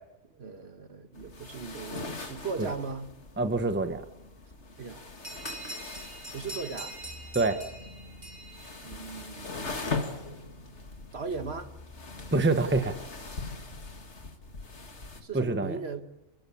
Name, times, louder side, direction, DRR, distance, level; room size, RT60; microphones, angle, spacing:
voice 1, 0.3-3.1 4.8-5.1 6.3-7.0 8.8-9.9 11.1-11.7 15.2-16.0, right 4 dB, 55° right, 1.6 m, -38 dB
sound 1, 1.1-15.2, left 3 dB, 60° left, 2.4 m, -41 dB
voice 2, 3.4-4.0 7.3-7.6 12.3-13.0 15.3-15.8, right 3 dB, 10° right, 1.0 m, -26 dB
sound 2, 5.2-9.5, right 1 dB, 30° right, 3.8 m, -44 dB
sound 3, 7.0-14.2, left 1 dB, 35° left, 5.5 m, -52 dB
29.0 x 14.5 x 8.6 m
omnidirectional pair, 1.3 m